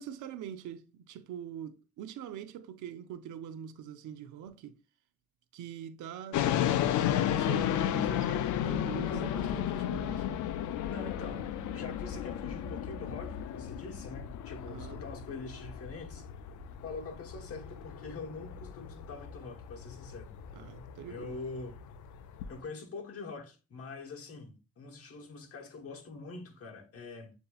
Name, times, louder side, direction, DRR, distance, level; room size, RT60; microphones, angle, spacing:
voice 1, 0.0-4.8 5.5-7.0 7.3-10.3 14.6-15.0 20.5-21.4, right 9 dB, 80° right, 0.6 m, -43 dB
sound 1, 6.3-22.6, left 10 dB, 80° left, 0.5 m, -34 dB
voice 2, 9.1-9.6 10.9-16.3 16.8-20.3 21.1-21.8 22.5-27.3, left 3 dB, 50° left, 1.1 m, -44 dB
7.7 x 2.8 x 2.3 m
cardioid pair, 90°, 30 cm